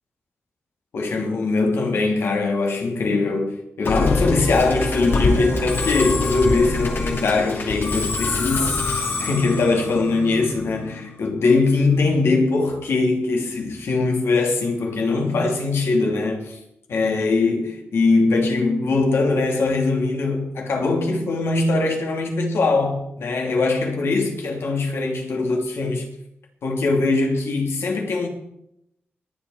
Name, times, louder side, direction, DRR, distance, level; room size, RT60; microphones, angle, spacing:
voice 1, 0.9-16.6 16.9-26.1 26.6-28.3, left 3 dB, 75° left, 2.8 m, -21 dB
Musical instrument, 3.8-11.2, left 3 dB, 60° left, 2.6 m, -25 dB
21.0 x 7.9 x 4.9 m
wide cardioid pair, 95°, 4 cm